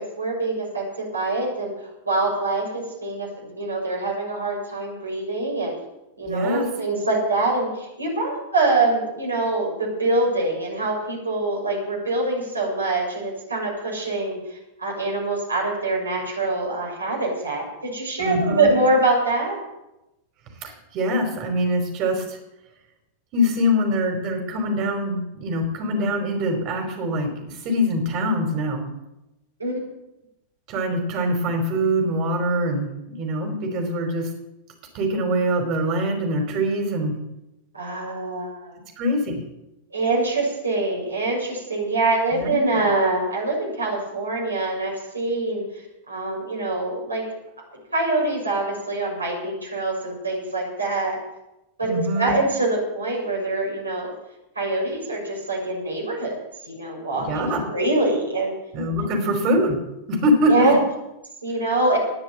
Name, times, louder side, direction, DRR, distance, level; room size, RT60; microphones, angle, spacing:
voice 1, 0.0-1.7 2.0-3.3 3.5-5.7 6.2-19.6 29.6-29.8 37.7-38.7 39.9-45.6 46.1-47.3 47.9-51.2 51.8-54.1 54.5-56.3 56.7-58.5 59.1-59.2 60.4-60.8 61.4-62.0, right 2 dB, 80° right, -3 dB, 6.6 m, -24 dB
voice 2, 6.2-6.6 18.2-18.7 20.6-22.4 23.3-28.8 30.7-32.9 33.2-34.3 34.9-37.1 39.0-39.4 42.3-42.8 51.8-52.3 57.2-57.6 58.7-59.8 60.1-60.7, equal, 40° right, 3 dB, 5.2 m, -23 dB
20.0 x 7.2 x 9.0 m, 0.93 s
figure-of-eight pair, 90°, 0 cm